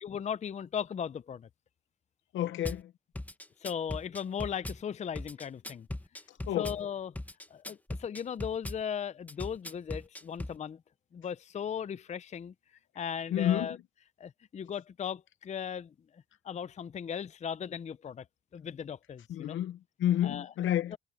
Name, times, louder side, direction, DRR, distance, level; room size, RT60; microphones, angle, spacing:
voice 1, 0.0-1.5 3.6-5.9 6.5-7.1 7.5-10.8 11.1-12.5 13.0-13.8 14.2-15.9 16.4-18.3 18.5-19.6 20.2-20.5 20.9-21.0, left 8 dB, 35° left, 0.5 m, -37 dB
voice 2, 2.3-2.9 6.5-6.7 13.3-13.7 19.3-21.0, left 11 dB, 75° left, 0.9 m, -30 dB
Drum kit / Bass drum, 2.6-2.8 3.1-4.8 5.1-6.8 7.1-8.8 9.3-10.6, left 1 dB, 10° left, 1.3 m, -39 dB
cardioid pair, 90°, 20 cm